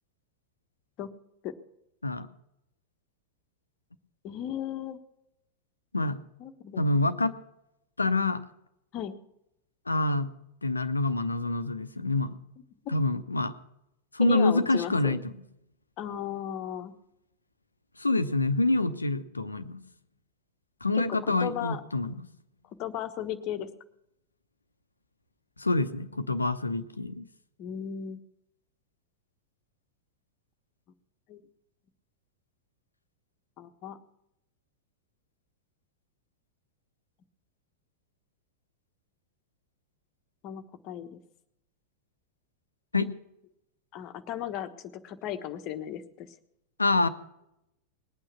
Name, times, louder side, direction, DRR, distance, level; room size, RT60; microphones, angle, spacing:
voice 1, 4.2-5.0 6.4-6.8 8.9-9.2 14.2-15.1 16.0-16.9 20.9-21.8 22.8-23.7 27.6-28.2 31.3-31.4 33.6-34.0 40.4-41.2 43.9-46.3, left 9 dB, 40° left, 9 dB, 1.3 m, -35 dB
voice 2, 6.8-7.3 8.0-8.4 9.9-10.3 10.6-12.4 12.9-13.5 14.1-15.3 18.0-19.8 20.8-22.1 25.6-27.3 42.9-43.1 46.8-47.1, left 2 dB, 80° left, 12 dB, 0.9 m, -26 dB
20.5 x 8.9 x 5.9 m, 0.82 s
figure-of-eight pair, 90°, 0 cm